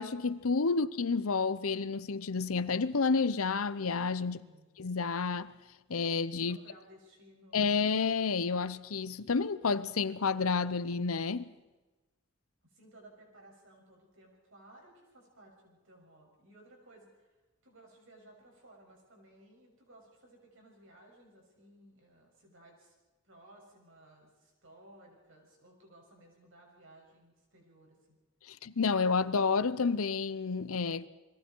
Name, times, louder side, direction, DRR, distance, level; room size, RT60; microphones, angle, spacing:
voice 1, 0.0-4.4 4.8-5.5 5.9-6.6 7.5-11.5 28.5-31.1, left 4 dB, 80° left, 0.8 m, -30 dB
voice 2, 4.3-4.7 6.4-7.6 12.6-22.9 23.2-28.2, right 1 dB, 65° right, 6.9 m, -58 dB
30.0 x 21.5 x 4.6 m
head